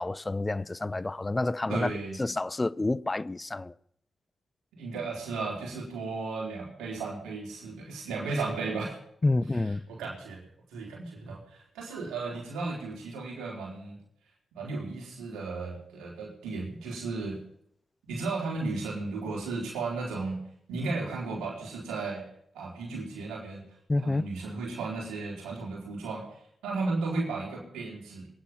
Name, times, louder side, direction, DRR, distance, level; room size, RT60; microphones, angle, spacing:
voice 1, 0.0-1.9 2.2-3.7 9.2-9.8 23.9-24.3, left 2 dB, 30° left, 0.7 m, -29 dB
voice 2, 1.7-2.2 4.7-9.0 9.9-14.0 14.5-17.4 18.1-20.4 20.7-22.3 22.5-23.7 24.0-26.4 26.6-28.3, right 3 dB, 90° right, 3.7 m, -34 dB
22.0 x 9.4 x 5.8 m
supercardioid pair, 40°, 0 cm